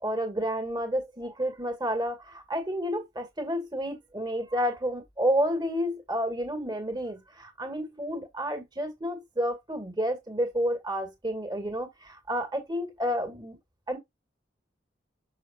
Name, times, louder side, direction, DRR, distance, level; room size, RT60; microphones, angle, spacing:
voice 1, 0.0-13.6 13.9-14.0, equal, 20° right, 2.2 m, -30 dB
6.9 x 6.2 x 2.5 m
head